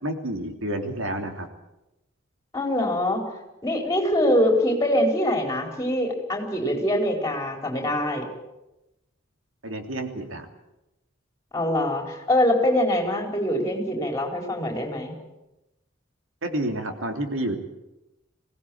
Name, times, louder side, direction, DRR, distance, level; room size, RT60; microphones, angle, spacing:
voice 1, 0.0-1.5 9.6-10.5 16.4-17.6, right 1 dB, 90° right, 4 dB, 3.1 m, -29 dB
voice 2, 2.5-3.2 3.6-8.3 11.5-15.1, left 1 dB, 15° left, 2 dB, 4.5 m, -24 dB
22.0 x 17.5 x 8.7 m, 0.96 s
head